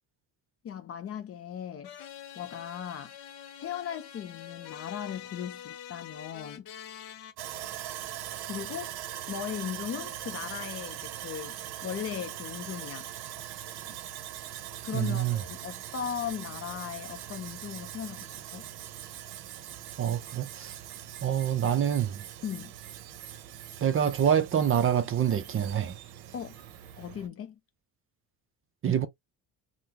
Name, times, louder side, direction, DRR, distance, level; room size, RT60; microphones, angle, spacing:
voice 1, 0.6-2.0 2.4-3.1 3.6-6.7 8.5-8.9 9.3-13.1 14.8-18.7 22.4-22.7 26.3-26.6 27.0-27.6, left 9 dB, 35° left, 0.4 m, -38 dB
sound 1, 1.8-7.3, left 10 dB, 65° left, 0.8 m, -45 dB
Sawing, 7.4-27.3, right 11 dB, 70° right, 0.7 m, -42 dB
voice 2, 14.9-15.4 20.0-20.8 21.2-22.2 23.8-26.0 28.8-29.1, right 9 dB, 35° right, 0.4 m, -26 dB
3.5 x 2.0 x 2.8 m
cardioid pair, 150°, 40 cm